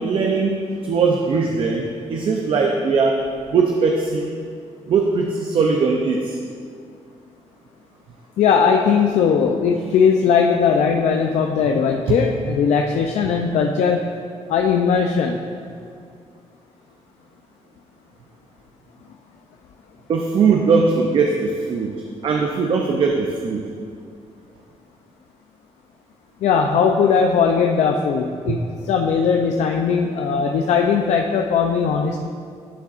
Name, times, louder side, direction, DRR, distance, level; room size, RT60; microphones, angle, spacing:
voice 1, 0.0-3.2 3.5-4.3 4.9-6.4 12.1-12.2 20.1-23.6 28.5-28.6, right 4 dB, 50° right, 1 dB, 0.6 m, -20 dB
voice 2, 8.4-14.1 14.5-15.4 26.4-28.6 28.9-32.3, left 6 dB, 80° left, 2 dB, 0.5 m, -19 dB
11.5 x 7.1 x 2.5 m, 2.3 s
cardioid pair, 155°, 11 cm